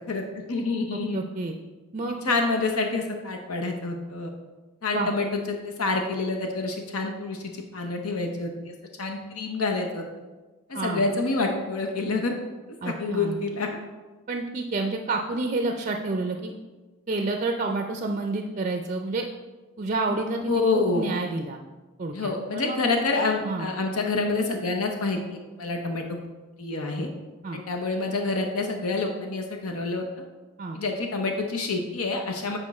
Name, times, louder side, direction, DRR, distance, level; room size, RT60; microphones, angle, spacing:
voice 1, 0.1-1.2 2.2-4.3 4.8-10.0 10.8-12.3 12.8-13.8 20.5-21.1 22.1-25.2 25.6-26.0 26.6-27.1 27.5-30.0 30.7-32.6, left 3 dB, 80° left, 3 dB, 0.8 m, -27 dB
voice 2, 0.9-1.5 1.9-2.4 4.9-5.1 10.7-11.0 12.8-13.4 14.3-16.5 17.1-19.3 19.8-21.6 22.0-22.8 23.4-23.7 27.4-27.6 30.6-30.8, right 3 dB, 35° right, 4 dB, 0.4 m, -29 dB
8.4 x 5.1 x 4.2 m, 1.2 s
head